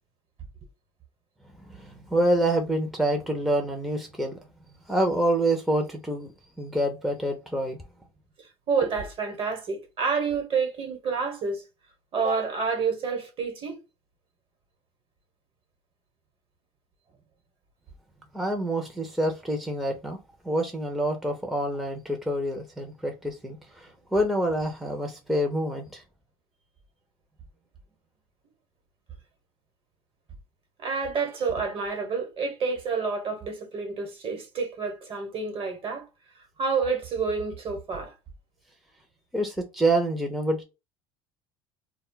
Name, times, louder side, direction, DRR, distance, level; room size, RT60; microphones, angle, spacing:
voice 1, 1.7-4.4 4.9-6.3 6.6-7.8 18.3-20.2 20.4-26.0 39.3-40.6, right 1 dB, ahead, 0.6 m, -27 dB
voice 2, 8.4-11.6 12.1-13.8 30.8-36.1 36.6-38.1, right 5 dB, 45° right, 1.1 m, -29 dB
2.2 x 2.0 x 3.7 m
supercardioid pair, 85°, 13 cm